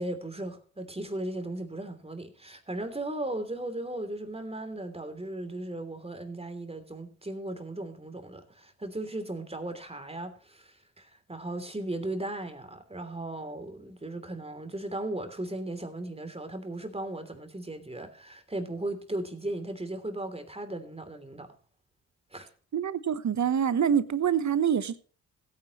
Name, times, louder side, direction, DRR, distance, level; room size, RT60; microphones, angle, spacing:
voice 1, 0.0-21.5 22.3-22.5, right 1 dB, 15° right, 3.1 m, -37 dB
voice 2, 22.7-25.0, right 8 dB, 50° right, 1.1 m, -26 dB
16.0 x 9.5 x 3.1 m
supercardioid pair, 50°, 36 cm